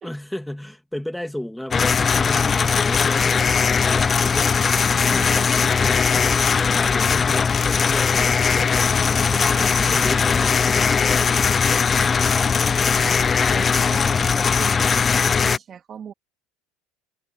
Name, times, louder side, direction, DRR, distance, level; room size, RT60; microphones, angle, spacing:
voice 1, 0.0-4.6 5.1-5.5 5.8-8.9 9.3-12.5, left 1 dB, 5° left, 2.4 m, -34 dB
sound 1, 1.7-15.6, left 6 dB, 30° left, 0.3 m, -19 dB
voice 2, 4.9-6.0 9.1-10.1 12.5-16.1, right 8 dB, 40° right, 2.4 m, -39 dB
supercardioid pair, 105°, 0 cm